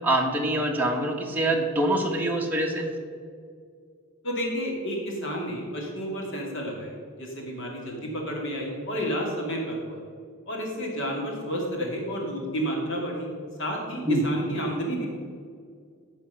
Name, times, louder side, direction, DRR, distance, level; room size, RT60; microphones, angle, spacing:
voice 1, 0.0-2.9 14.0-14.2, right 1 dB, 10° right, -1 dB, 1.3 m, -25 dB
voice 2, 4.2-10.0 10.5-13.3 13.6-15.1, equal, 60° left, -1 dB, 2.5 m, -31 dB
14.5 x 5.1 x 5.6 m, 2.2 s
head